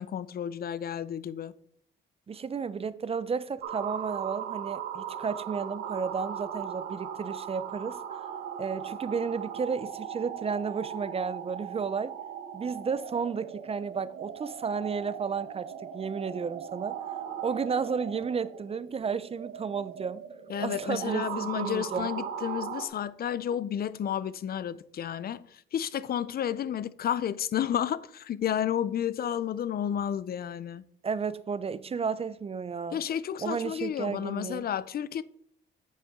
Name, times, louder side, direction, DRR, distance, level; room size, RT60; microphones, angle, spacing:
voice 1, 0.0-1.5 20.5-30.8 32.9-35.2, left 9 dB, 50° left, 0.5 m, -31 dB
voice 2, 2.3-8.0 8.6-12.1 12.5-17.0 17.4-20.2 20.6-22.1 31.0-33.0 33.4-34.6, right 5 dB, 30° right, 0.5 m, -32 dB
sound 1, 3.6-22.9, right 8 dB, 85° right, 1.1 m, -38 dB
9.1 x 7.2 x 3.7 m
cardioid pair, 90°, 20 cm